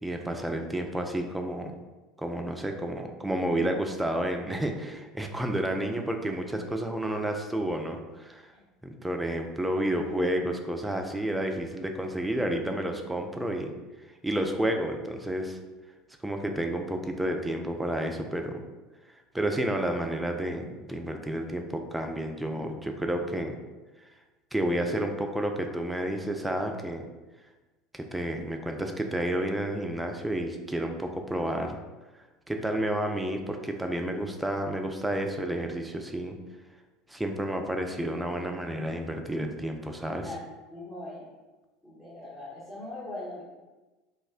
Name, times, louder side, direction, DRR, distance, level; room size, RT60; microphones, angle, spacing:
voice 1, 0.0-1.7 2.2-8.5 8.8-13.7 14.2-15.6 16.2-18.6 19.3-23.6 24.5-27.0 27.9-31.8 32.5-36.4 37.1-40.3, right 1 dB, 10° right, 4 dB, 0.4 m, -30 dB
voice 2, 40.7-41.3 41.8-43.4, left 1 dB, 20° left, -9 dB, 0.9 m, -40 dB
2.4 x 2.1 x 3.5 m, 1.2 s
figure-of-eight pair, 70°, 0 cm